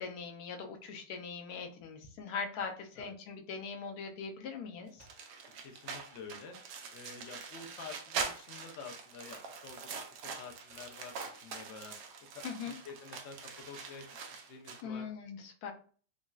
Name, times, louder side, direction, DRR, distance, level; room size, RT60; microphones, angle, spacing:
voice 1, 0.0-5.1 12.4-12.7 14.8-15.7, left 5 dB, 70° left, 3 dB, 1.0 m, -41 dB
sound 1, 5.0-14.8, right 5 dB, 75° right, 1.1 m, -43 dB
voice 2, 5.6-6.6 6.9-10.0 10.4-11.1 11.4-12.0 12.3-13.4 13.7-15.1, left 5 dB, 85° left, 3 dB, 0.6 m, -49 dB
3.8 x 2.0 x 2.3 m, 0.42 s
omnidirectional pair, 1.9 m